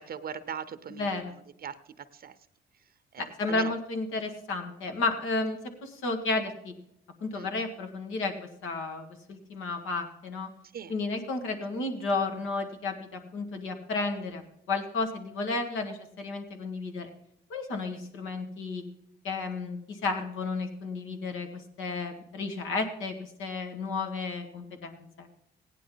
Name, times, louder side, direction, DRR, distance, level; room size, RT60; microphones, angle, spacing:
voice 1, 0.0-1.2 1.6-2.3 3.1-3.7 7.3-7.5 10.7-10.9, right 7 dB, 50° right, 11 dB, 0.7 m, -40 dB
voice 2, 0.9-1.4 3.2-6.8 7.2-10.5 10.9-14.4 14.7-17.1 17.5-18.8 19.2-25.3, left 3 dB, 85° left, 5 dB, 1.8 m, -32 dB
16.0 x 10.0 x 3.9 m, 0.77 s
cardioid pair, 90°, 20 cm